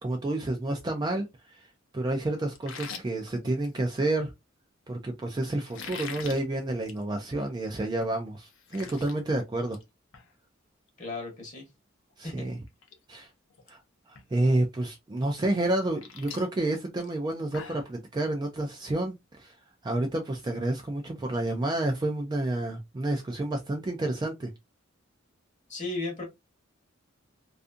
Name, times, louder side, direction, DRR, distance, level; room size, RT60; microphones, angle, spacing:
voice 1, 0.0-1.7 1.9-4.3 4.9-9.8 12.2-12.6 13.1-13.3 13.7-13.8 14.1-19.6 19.8-24.5, right 2 dB, 20° right, 0.3 m, -29 dB
sound 1, 2.5-4.1 5.6-6.4 6.8-7.0 7.4-7.5 8.0-8.1 8.3-9.1 9.5-9.8 10.1-10.3 12.1-12.2 12.7-13.0 13.2-13.7 14.1-14.2 15.6-17.9, left 6 dB, 70° left, 0.6 m, -43 dB
voice 2, 11.0-11.6 12.2-12.5 25.7-26.2, left 2 dB, 35° left, 0.8 m, -35 dB
2.6 x 2.4 x 2.4 m
head